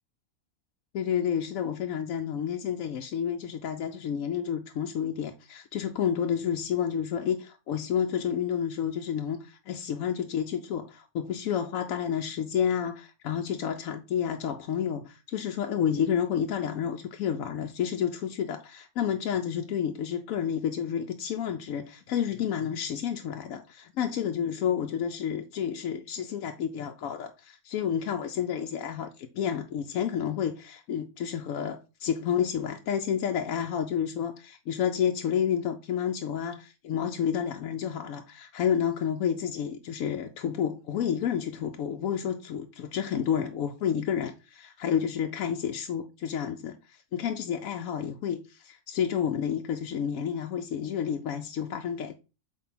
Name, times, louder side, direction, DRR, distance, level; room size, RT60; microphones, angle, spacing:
voice 1, 0.9-52.2, left 8 dB, 85° left, 1.0 m, -30 dB
8.0 x 2.7 x 5.8 m
omnidirectional pair, 1.4 m